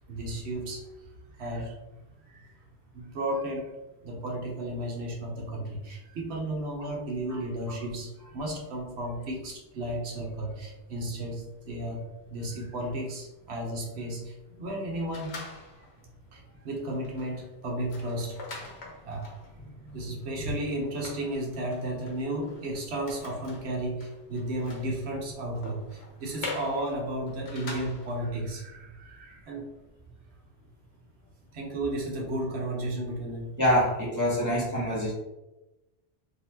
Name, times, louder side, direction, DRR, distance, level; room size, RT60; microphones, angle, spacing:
voice 1, 0.1-0.8 1.4-1.7 2.3-2.5 2.9-3.7 4.0-12.0 12.3-15.3 16.3-18.4 19.0-19.3 19.9-29.7 31.5-33.5, right 1 dB, 70° right, -1 dB, 1.1 m, -33 dB
sound 1, 15.1-16.0 16.5-16.6 16.9-28.3, left 2 dB, 70° left, 1.1 m, -44 dB
voice 2, 33.6-35.1, equal, 20° right, -6 dB, 0.8 m, -26 dB
3.9 x 2.7 x 2.7 m, 1.0 s
omnidirectional pair, 1.2 m